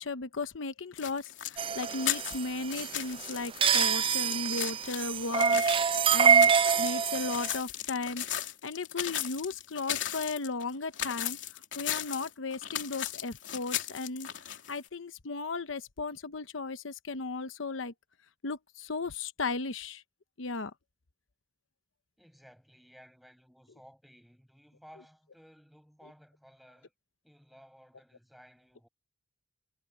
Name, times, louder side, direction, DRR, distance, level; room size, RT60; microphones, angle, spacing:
voice 1, 0.0-11.4 11.8-14.3 14.7-17.9 18.4-20.0 20.4-20.7, left 3 dB, 90° left, 0.9 m, -36 dB
sound 1, 1.0-14.9, left 11 dB, 70° left, 3.1 m, -36 dB
sound 2, 1.6-7.6, right 7 dB, 30° right, 0.3 m, -26 dB
voice 2, 22.2-26.9 27.2-28.9, equal, ahead, 7.7 m, -57 dB
head